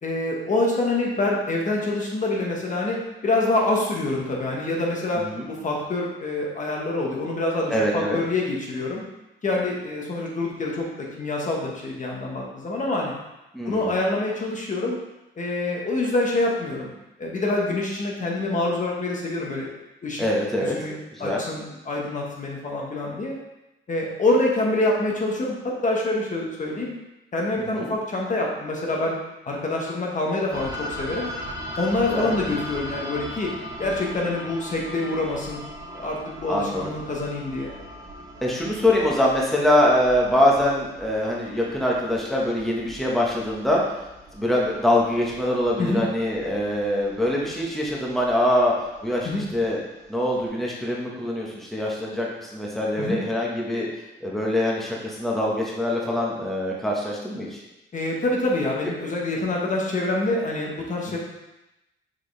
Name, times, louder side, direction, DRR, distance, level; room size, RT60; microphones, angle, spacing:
voice 1, 0.0-5.2 5.5-9.0 9.4-10.9 11.2-13.1 13.7-15.0 15.4-16.9 17.2-19.7 20.0-20.2 20.6-23.3 23.9-26.9 27.3-29.1 29.5-31.3 31.8-33.5 33.8-35.6 35.9-37.7 45.8-46.1 49.2-49.5 53.0-53.2 57.9-61.2, left 2 dB, 40° left, -2 dB, 1.4 m, -26 dB
voice 2, 7.7-8.2 13.5-13.9 20.2-20.8 21.2-21.4 27.6-27.9 32.1-32.3 36.5-36.9 38.4-43.8 44.3-48.7 49.0-49.8 50.1-53.9 54.2-57.6, left 1 dB, ahead, -4 dB, 1.3 m, -24 dB
sound 1, 30.5-50.5, equal, 20° right, 1.9 m, -39 dB
5.9 x 5.0 x 3.4 m, 0.95 s
cardioid pair, 90°, 20 cm